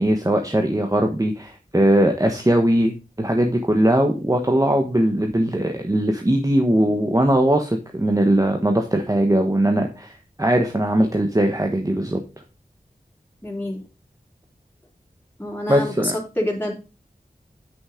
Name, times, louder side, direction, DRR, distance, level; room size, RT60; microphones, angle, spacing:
voice 1, 0.0-12.2 15.7-16.2, right 1 dB, 20° right, 3 dB, 1.1 m, -20 dB
voice 2, 13.4-13.8 15.4-16.7, left 1 dB, 10° left, -2 dB, 3.1 m, -27 dB
8.4 x 6.8 x 3.7 m, 0.31 s
wide cardioid pair, 70°, 15 cm